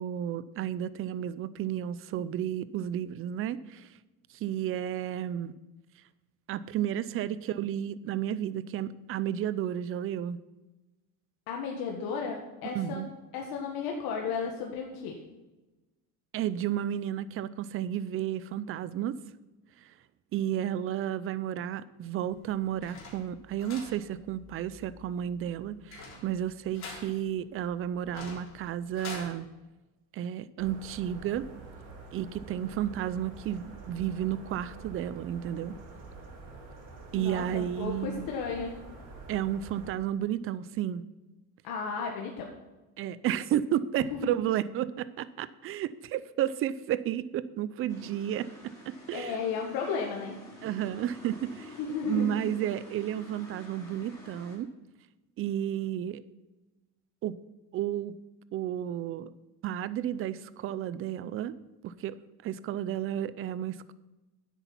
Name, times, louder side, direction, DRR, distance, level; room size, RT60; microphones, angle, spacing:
voice 1, 0.0-3.9 4.3-5.5 6.5-10.4 12.6-13.1 16.3-19.2 20.3-29.5 30.1-31.5 32.1-35.8 37.1-38.3 39.3-41.0 43.0-48.5 48.9-49.4 50.6-51.7 52.0-54.7 55.4-56.2 57.2-57.4 57.7-58.2 58.5-59.3 59.6-61.5 61.8-63.9, right 11 dB, 30° right, 17 dB, 0.4 m, -32 dB
voice 2, 11.5-13.1 13.3-15.2 37.2-38.8 41.6-42.5 44.0-44.4 49.1-50.4 51.8-52.4, left 5 dB, 55° left, 0 dB, 1.6 m, -34 dB
sound 1, 22.3-29.3, left 3 dB, 40° left, 3.7 m, -47 dB
sound 2, 30.6-39.9, right 3 dB, 50° right, 3.8 m, -47 dB
sound 3, 47.9-54.6, left 1 dB, 5° left, 4.1 m, -49 dB
10.0 x 8.2 x 5.7 m, 1.1 s
cardioid pair, 135°, 43 cm